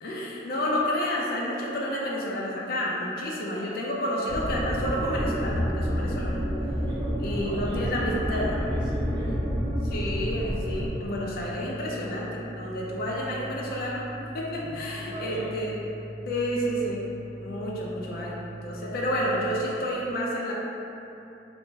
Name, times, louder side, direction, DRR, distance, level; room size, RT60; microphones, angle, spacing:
voice 1, 0.0-6.4 7.2-8.5 9.9-15.8 16.3-17.1 17.4-20.5, equal, 55° left, -4 dB, 0.4 m, -30 dB
sound 1, 4.3-10.9, equal, 10° right, 0.8 m, -29 dB
voice 2, 6.9-9.5 14.6-15.6, right 1 dB, 25° right, -6 dB, 0.4 m, -41 dB
sound 2, 9.1-19.6, equal, 70° right, 0.7 m, -41 dB
2.4 x 2.2 x 3.0 m, 2.9 s
head